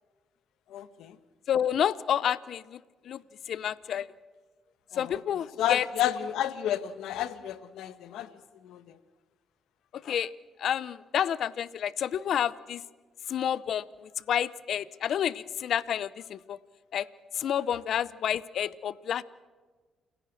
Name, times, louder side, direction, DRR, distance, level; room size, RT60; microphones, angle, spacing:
voice 1, 0.7-1.2 4.9-5.2 5.6-8.3 8.6-9.0, left 11 dB, 85° left, 14 dB, 1.3 m, -31 dB
voice 2, 1.5-2.8 3.1-3.2 3.5-4.1 4.9-5.9 10.0-10.3 10.6-12.8 13.3-16.6 16.9-17.1 17.3-19.2, left 9 dB, 65° left, 19 dB, 0.7 m, -29 dB
29.0 x 16.5 x 6.3 m, 1.4 s
cardioid pair, 90°, 0 cm